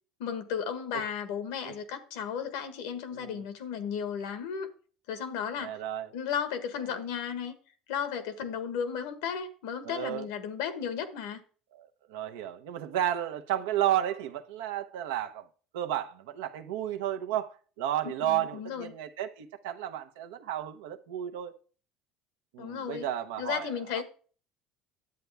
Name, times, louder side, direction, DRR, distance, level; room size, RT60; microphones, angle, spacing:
voice 1, 0.2-4.7 5.1-5.7 6.1-7.5 7.9-11.4 18.2-18.9 22.6-23.1 23.4-24.0, left 7 dB, 85° left, 1.3 m, -34 dB
voice 2, 5.6-6.1 6.9-7.0 9.8-10.3 11.7-15.4 15.7-21.5 22.5-24.0, right 12 dB, 90° right, 0.9 m, -33 dB
10.5 x 8.1 x 3.4 m
supercardioid pair, 100°, 0 cm